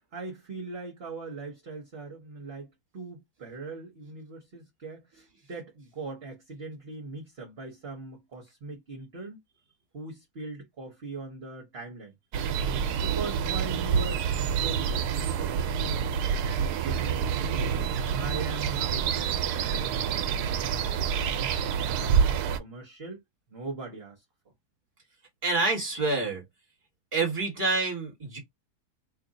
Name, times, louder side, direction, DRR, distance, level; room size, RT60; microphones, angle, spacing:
voice 1, 0.1-9.4 9.9-12.1 13.0-16.1 16.4-17.8 18.1-21.3 21.7-23.2 23.5-24.2, right 3 dB, 45° right, 1.1 m, -41 dB
sound 1, 12.3-22.6, right 7 dB, 85° right, 1.1 m, -27 dB
voice 2, 25.4-26.4 27.1-28.4, right 3 dB, 20° right, 1.6 m, -27 dB
3.0 x 2.5 x 3.9 m
omnidirectional pair, 1.6 m